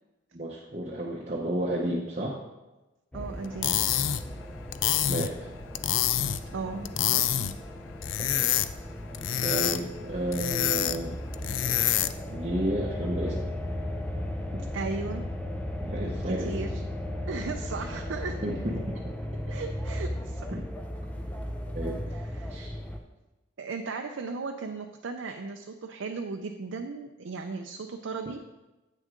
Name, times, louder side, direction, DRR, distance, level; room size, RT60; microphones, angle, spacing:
voice 1, 0.3-2.4 5.1-5.3 8.2-8.5 9.4-11.2 12.3-13.4 14.5-14.6 15.8-16.8 18.4-19.1 20.5-20.6 21.7-22.0 22.5-22.8, right 1 dB, 35° right, -3 dB, 0.8 m, -32 dB
sound 1, 3.1-23.0, left 1 dB, 5° left, 0.5 m, -36 dB
voice 2, 3.1-3.9 6.5-7.6 14.7-15.3 16.3-16.8 17.3-18.5 19.5-20.5 22.1-22.7 23.6-28.5, right 4 dB, 85° right, 4 dB, 0.5 m, -36 dB
sound 2, 3.4-12.3, left 11 dB, 80° left, 0.4 m, -28 dB
8.5 x 6.3 x 3.8 m, 1.1 s
head